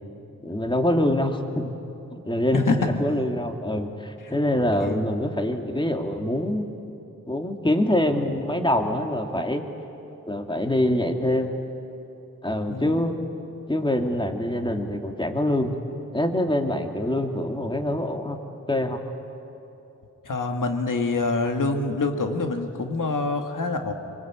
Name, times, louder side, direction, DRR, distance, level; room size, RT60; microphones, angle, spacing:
voice 1, 0.4-1.7 2.1-6.7 7.3-9.7 10.3-11.5 12.4-13.1 13.7-15.8 16.1-18.4 18.7-19.0, left 1 dB, 15° left, 4 dB, 2.4 m, -25 dB
voice 2, 12.7-13.1 20.2-23.9, left 3 dB, 80° left, 4 dB, 2.1 m, -26 dB
24.5 x 23.5 x 8.9 m, 2.9 s
cardioid pair, 55°, 32 cm